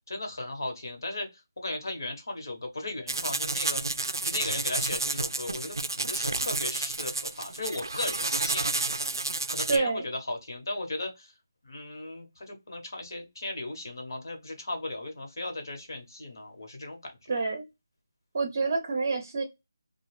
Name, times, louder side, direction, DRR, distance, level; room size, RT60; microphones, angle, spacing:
voice 1, 0.1-1.3 1.6-3.8 4.2-8.9 9.5-11.3 11.6-17.4, left 2 dB, 65° left, 4 dB, 1.1 m, -36 dB
sound 1, 3.1-9.8, right 3 dB, 85° right, 0.3 m, -30 dB
voice 2, 9.7-10.1 17.3-17.7 18.3-19.4, right 4 dB, 35° right, 4 dB, 0.6 m, -27 dB
2.5 x 2.3 x 3.1 m, 0.22 s
figure-of-eight pair, 170°, 2 cm